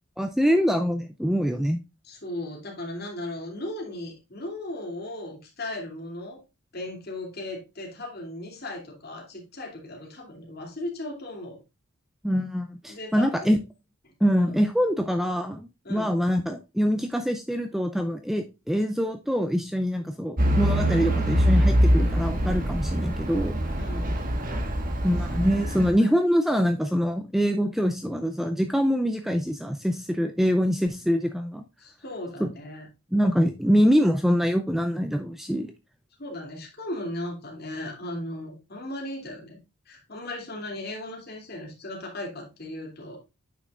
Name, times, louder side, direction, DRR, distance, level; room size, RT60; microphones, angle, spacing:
voice 1, 0.2-1.8 12.2-13.6 14.2-23.6 25.0-31.6 32.4-32.5 33.1-35.7, equal, ahead, 6 dB, 0.4 m, -24 dB
voice 2, 2.0-6.4 6.7-11.6 12.9-13.5 14.3-14.6 15.8-16.2 19.9-20.0 23.7-24.2 26.0-26.1 31.8-32.9 36.2-39.6 39.9-43.2, left 1 dB, 45° left, 0 dB, 2.7 m, -37 dB
Truck / Idling, 20.4-25.9, equal, 40° right, 1.3 m, -24 dB
9.1 x 6.1 x 2.4 m, 0.26 s
head